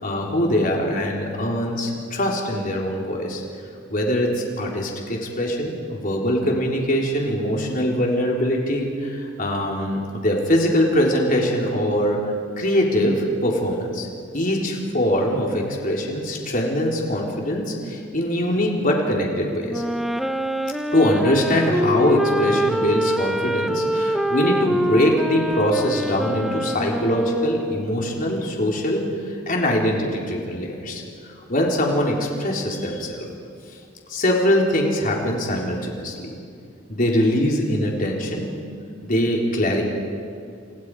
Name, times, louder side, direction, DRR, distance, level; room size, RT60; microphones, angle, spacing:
voice 1, 0.0-3.4 3.9-12.3 12.6-14.1 14.3-19.8 20.9-29.1 29.5-31.0 31.5-33.3 34.1-36.3 36.9-38.6 39.0-39.8, equal, 45° left, -1 dB, 4.0 m, -22 dB
Wind instrument woodwind instrument, 19.7-28.0, equal, ahead, 0.9 m, -25 dB
29.5 x 27.5 x 5.0 m, 2.4 s
head